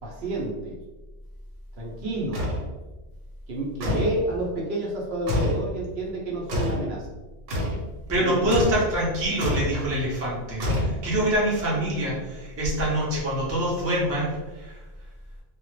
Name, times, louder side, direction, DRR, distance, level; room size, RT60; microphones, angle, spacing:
voice 1, 0.0-0.7 1.8-2.5 3.5-7.1 8.2-8.3, right 1 dB, 65° right, -3 dB, 0.8 m, -29 dB
sound 1, 2.3-2.7 3.8-4.2 5.3-5.7 6.5-6.9 7.5-7.8 8.5-8.9 9.4-9.8 10.6-11.2, left 1 dB, 85° right, 1.0 m, -26 dB
voice 2, 8.1-14.8, right 1 dB, 20° right, -6 dB, 0.4 m, -25 dB
2.1 x 2.0 x 3.0 m, 1.2 s
omnidirectional pair, 1.2 m